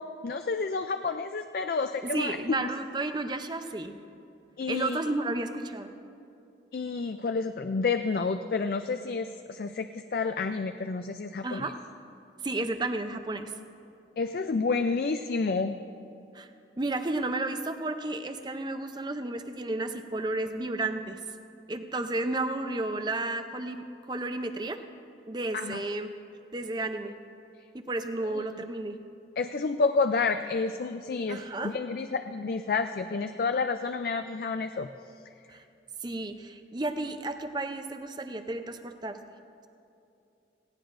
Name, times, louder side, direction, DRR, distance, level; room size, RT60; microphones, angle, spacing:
voice 1, 0.2-2.4 4.6-5.0 6.7-11.7 14.2-15.8 25.5-25.8 28.3-28.5 29.4-34.9, left 4 dB, 55° left, 8 dB, 0.4 m, -29 dB
voice 2, 2.1-3.9 4.7-5.9 11.4-11.7 12.4-13.5 16.3-16.5 16.8-21.2 21.7-24.8 25.3-26.1 26.5-27.1 27.7-29.0 31.3-31.7 35.5-35.6 36.0-39.2, right 2 dB, 25° right, 8 dB, 0.5 m, -32 dB
18.0 x 16.5 x 2.6 m, 2.6 s
head